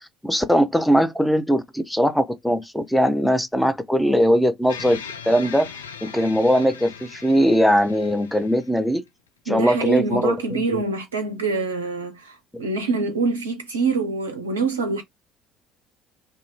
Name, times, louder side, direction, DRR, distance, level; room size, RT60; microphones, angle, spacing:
voice 1, 0.2-5.0 5.3-5.7 6.0-9.0 9.5-10.8, equal, 5° left, 0.5 m, -20 dB
sound 1, 4.7-9.1, left 7 dB, 80° left, 0.3 m, -39 dB
voice 2, 9.5-15.0, right 3 dB, 80° right, 0.4 m, -25 dB
2.5 x 2.3 x 2.9 m
figure-of-eight pair, 55°, 0 cm